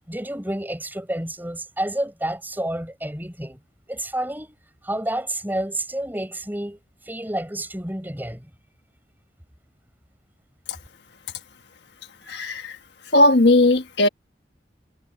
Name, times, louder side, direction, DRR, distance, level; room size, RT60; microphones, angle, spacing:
voice 1, 0.1-3.6 3.9-4.6 4.8-6.8 7.0-8.5, right 1 dB, 10° right, 5.1 m, -29 dB
voice 2, 12.3-12.8 13.1-14.1, left 2 dB, 70° left, 1.5 m, -17 dB
head